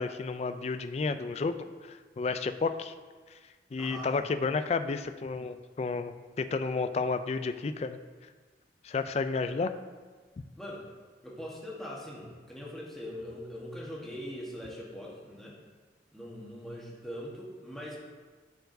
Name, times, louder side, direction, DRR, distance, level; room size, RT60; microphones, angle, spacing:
voice 1, 0.0-2.9 3.7-8.0 8.8-9.7, left 4 dB, 35° left, 10 dB, 0.3 m, -31 dB
voice 2, 3.8-4.2 9.4-9.5 10.6-10.9 11.2-15.6 16.1-18.0, equal, ahead, -5 dB, 1.3 m, -42 dB
11.5 x 4.6 x 2.7 m, 1.4 s
head